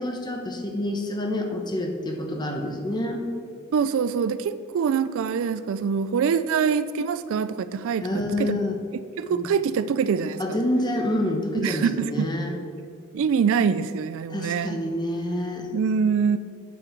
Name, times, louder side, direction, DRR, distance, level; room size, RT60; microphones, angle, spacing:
voice 1, 0.0-3.2 8.0-8.8 9.2-9.5 10.4-12.5 14.3-15.7, left 1 dB, 20° left, 2 dB, 1.0 m, -27 dB
voice 2, 3.7-8.6 9.2-10.6 11.5-12.3 13.1-14.8 15.7-16.4, right 6 dB, 65° right, 13 dB, 0.3 m, -24 dB
8.4 x 7.7 x 4.5 m, 2.3 s
head